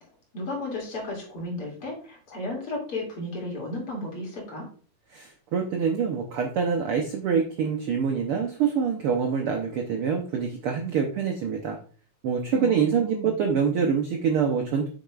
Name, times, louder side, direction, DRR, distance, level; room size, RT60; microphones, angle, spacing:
voice 1, 0.3-4.7 12.5-13.4, left 2 dB, 50° left, -2 dB, 3.2 m, -34 dB
voice 2, 5.1-11.8 12.2-14.9, right 6 dB, 70° right, 3 dB, 1.3 m, -25 dB
8.0 x 6.4 x 2.4 m, 0.40 s
omnidirectional pair, 3.3 m